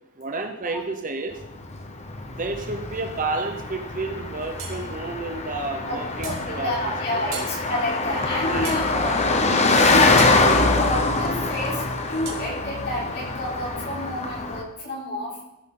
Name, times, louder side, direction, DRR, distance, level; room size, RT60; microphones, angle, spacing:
voice 1, 0.2-1.4 2.4-6.7 7.1-7.4 8.5-9.2, right 3 dB, 35° right, 6 dB, 0.8 m, -31 dB
Car passing by, 1.4-14.6, left 3 dB, 30° left, 0.9 m, -24 dB
sound 1, 4.6-4.8 6.2-6.4 7.3-7.5 8.6-8.9 10.2-10.4 12.2-12.4, right 6 dB, 65° right, 3.1 m, -35 dB
voice 2, 6.2-8.9 9.6-11.8 12.1-15.4, left 1 dB, 50° left, -5 dB, 3.5 m, -29 dB
15.0 x 8.0 x 3.8 m, 0.91 s
head